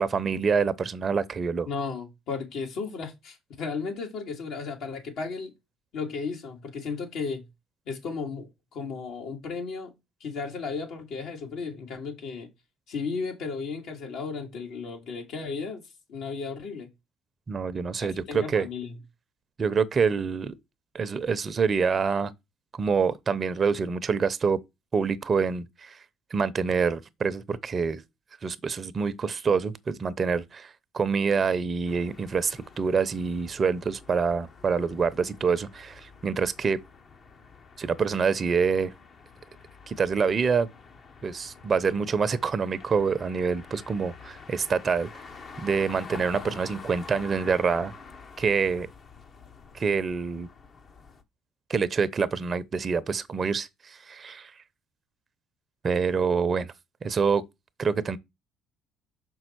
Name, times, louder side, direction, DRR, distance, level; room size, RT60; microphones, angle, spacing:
voice 1, 0.0-1.7 17.5-18.7 19.6-20.5 20.9-22.3 22.8-24.6 24.9-26.0 26.3-28.0 28.4-36.8 37.8-38.9 39.9-40.7 41.2-45.1 45.6-47.9 48.4-48.9 49.7-50.5 51.7-54.5 55.8-56.7 57.0-57.4 57.8-58.2, right 5 dB, 40° right, 0.8 m, -26 dB
voice 2, 1.7-5.5 5.9-7.5 7.9-9.9 10.2-12.5 12.9-15.8 16.1-16.9 18.0-19.0, left 5 dB, 65° left, 2.4 m, -34 dB
sound 1, 31.8-51.2, left 5 dB, 45° left, 1.3 m, -47 dB
6.1 x 5.5 x 4.6 m
hypercardioid pair, 60°, 0 cm